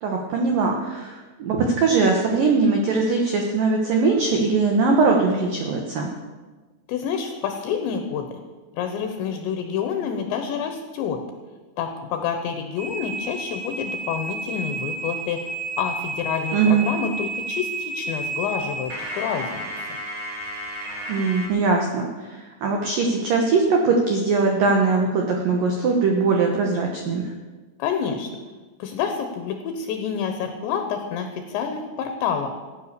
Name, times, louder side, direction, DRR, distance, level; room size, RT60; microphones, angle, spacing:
voice 1, 0.0-6.1 16.5-16.8 21.1-27.2, right 4 dB, 80° right, 1 dB, 1.9 m, -21 dB
voice 2, 6.9-8.3 8.7-11.2 11.8-15.4 15.8-19.7 27.8-28.3 28.8-32.5, left 7 dB, 75° left, 5 dB, 2.9 m, -28 dB
sound 1, 12.8-21.5, right 2 dB, 35° right, 2.3 m, -32 dB
15.5 x 9.4 x 6.8 m, 1.3 s
omnidirectional pair, 5.9 m